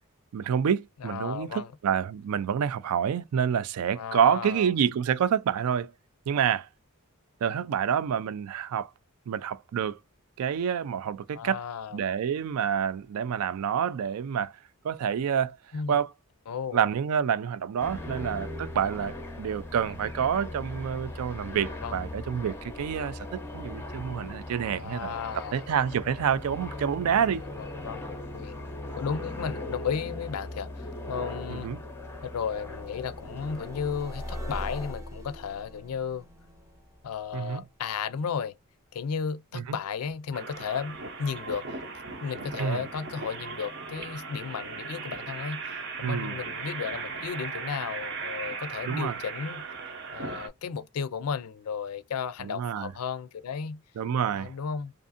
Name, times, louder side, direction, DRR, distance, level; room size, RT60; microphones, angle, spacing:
voice 1, 0.3-5.9 6.3-6.7 7.4-8.9 9.3-10.0 10.4-11.6 11.9-14.5 14.8-15.6 15.9-16.1 16.7-25.1 25.5-27.4 31.5-31.8 37.3-37.6 39.5-39.6 42.6-42.8 46.0-46.3 48.9-49.2 52.4-52.9 54.0-54.5, right 8 dB, 75° right, 0.3 m, -28 dB
voice 2, 1.0-1.7 3.9-4.7 11.3-12.0 15.7-16.0 16.5-16.9 21.5-22.0 24.7-25.6 27.6-28.0 28.3-28.5 29.0-31.7 32.2-36.3 37.0-38.5 38.9-41.8 42.2-49.6 50.1-53.8 54.3-54.9, left 6 dB, 80° left, 0.4 m, -34 dB
sound 1, 17.8-34.9, left 2 dB, 10° left, 0.6 m, -39 dB
sound 2, 31.2-38.1, equal, 15° right, 0.8 m, -43 dB
sound 3, 40.3-50.5, right 4 dB, 50° right, 0.7 m, -38 dB
2.6 x 2.5 x 2.5 m
head